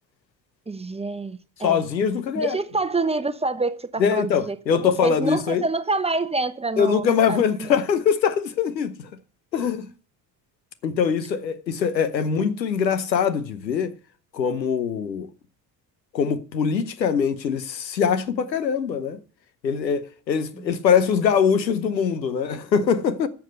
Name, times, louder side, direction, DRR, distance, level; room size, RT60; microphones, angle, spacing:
voice 1, 0.7-1.8 2.3-7.7 12.4-12.5 20.5-20.7, right 3 dB, 10° right, 0.9 m, -27 dB
voice 2, 1.6-2.6 4.0-5.7 6.8-9.1 9.5-9.9 10.8-13.9 14.3-15.3 16.1-19.2 19.6-23.3, left 7 dB, 80° left, 0.9 m, -23 dB
10.5 x 7.0 x 7.8 m
figure-of-eight pair, 50°, 50 cm